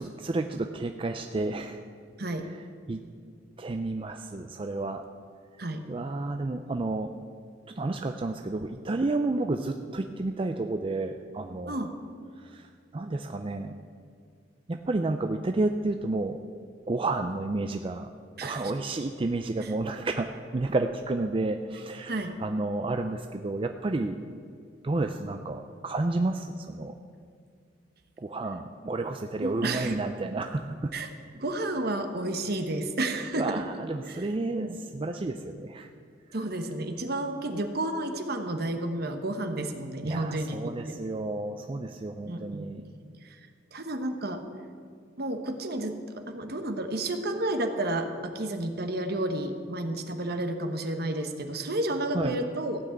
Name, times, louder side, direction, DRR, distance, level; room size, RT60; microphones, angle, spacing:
voice 1, 0.0-1.8 2.9-3.0 3.6-5.0 5.9-7.1 7.8-11.8 12.4-13.7 14.7-16.4 16.9-18.1 18.4-22.1 22.4-24.2 24.8-26.9 28.2-30.9 33.3-35.9 40.0-42.8 52.1-52.4, right 2 dB, 30° right, 6 dB, 0.5 m, -31 dB
voice 2, 2.2-2.5 5.6-5.8 11.7-11.9 18.4-18.7 19.6-19.7 22.1-22.4 29.4-30.0 30.9-33.6 34.1-34.8 36.3-41.0 42.3-42.7 43.2-43.4 43.7-44.4 45.2-52.8, right 1 dB, 60° right, 6 dB, 1.2 m, -31 dB
15.5 x 6.1 x 8.6 m, 2.2 s
head